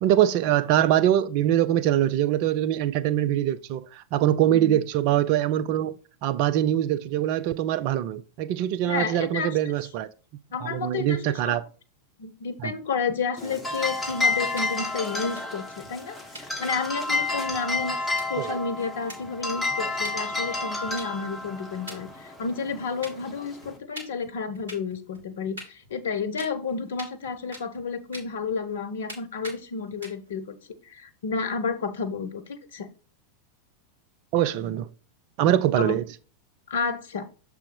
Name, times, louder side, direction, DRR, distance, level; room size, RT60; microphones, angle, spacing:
voice 1, 0.0-10.1 10.6-11.6 12.6-12.7 18.4-18.6 34.3-34.9 35.4-36.0, right 12 dB, 45° right, 0.4 m, -23 dB
voice 2, 8.8-9.6 10.5-11.6 12.2-30.5 30.8-32.9 35.7-35.9 36.7-37.3, left 5 dB, 60° left, 0.8 m, -31 dB
sound 1, 13.4-23.8, left 3 dB, 5° left, 1.4 m, -30 dB
sound 2, 14.0-14.6 14.9-15.0 15.2-15.4 15.8-16.0 16.3-16.4 16.8-16.9 17.2-17.9 18.2-18.3 18.7-18.8 19.1-19.7 20.0-20.1 20.5-21.5 21.9-22.8 23.0-23.4 23.6-25.3 25.6-26.1 26.4-27.8 28.1-28.8 29.1-29.2 29.4-29.6 29.9-30.4, right 1 dB, 70° right, 1.8 m, -43 dB
6.8 x 3.4 x 4.7 m
figure-of-eight pair, 90°, 0 cm